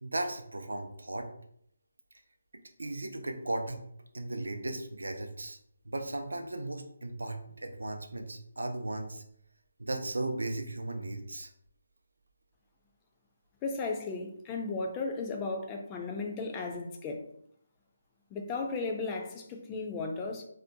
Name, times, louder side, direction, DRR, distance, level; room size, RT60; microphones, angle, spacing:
voice 1, 0.0-1.3 2.8-3.8 4.1-5.6 5.9-9.2 9.8-11.5, right 2 dB, 85° right, 4 dB, 0.4 m, -36 dB
voice 2, 13.6-17.3 18.3-20.4, left 3 dB, 15° left, 2 dB, 0.3 m, -35 dB
2.5 x 2.1 x 2.6 m, 0.69 s
figure-of-eight pair, 160°, 0 cm